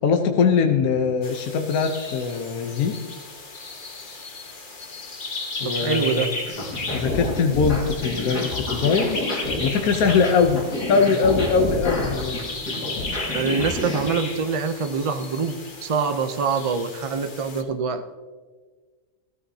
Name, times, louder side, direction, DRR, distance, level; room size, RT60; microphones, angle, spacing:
voice 1, 0.0-3.0 5.6-6.3 6.9-9.2 9.6-10.6 10.9-12.4, left 5 dB, 70° left, 5 dB, 1.3 m, -21 dB
sound 1, 1.2-17.6, left 3 dB, 35° left, 1.2 m, -35 dB
voice 2, 5.6-6.3 13.3-18.2, right 5 dB, 55° right, 8 dB, 0.3 m, -25 dB
sound 2, 6.4-14.0, left 2 dB, 85° left, 3.0 m, -28 dB
15.5 x 13.5 x 2.8 m, 1.4 s
omnidirectional pair, 1.7 m